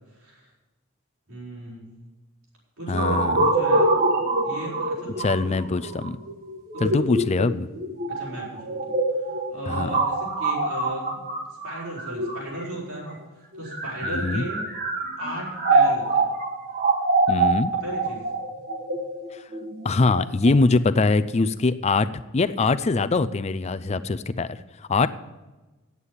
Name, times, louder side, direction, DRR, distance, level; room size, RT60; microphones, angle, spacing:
voice 1, 0.1-0.5 1.3-1.9 2.8-3.9 4.4-5.5 6.7-7.0 8.1-8.9 9.3-11.2 11.6-13.2 13.6-14.6 15.2-16.3 17.8-18.3, right 1 dB, 80° right, -4 dB, 4.6 m, -35 dB
voice 2, 2.9-3.5 5.2-6.2 6.8-7.7 9.7-9.9 14.0-14.5 17.3-17.7 19.3-19.4 19.8-22.1 22.3-24.6 24.9-25.1, left 3 dB, 30° left, 13 dB, 0.4 m, -22 dB
sound 1, 3.0-12.8 13.6-20.5, right 2 dB, 45° right, 1.4 m, -25 dB
9.6 x 8.3 x 7.2 m, 1.1 s
head